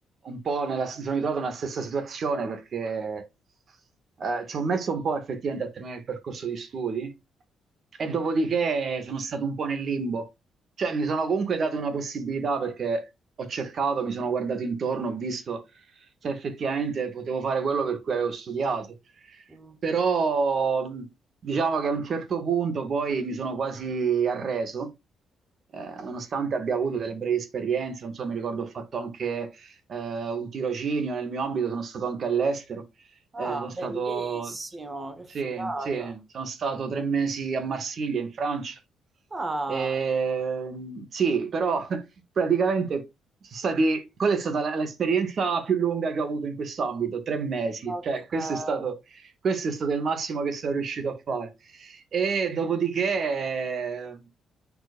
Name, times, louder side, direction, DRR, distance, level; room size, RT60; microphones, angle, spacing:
voice 1, 0.2-3.3 4.2-7.1 8.0-10.3 10.8-13.1 13.4-15.6 16.2-18.9 19.3-19.4 19.8-21.1 21.4-24.9 25.7-32.8 33.4-34.5 35.3-38.8 39.7-42.0 42.4-43.0 43.5-54.3, right 5 dB, 50° right, 2.0 m, -28 dB
voice 2, 33.3-36.1 39.3-40.0 47.9-48.0 48.3-48.8, right 2 dB, 25° right, 1.9 m, -34 dB
8.0 x 6.4 x 2.6 m
cardioid pair, 90°, 0 cm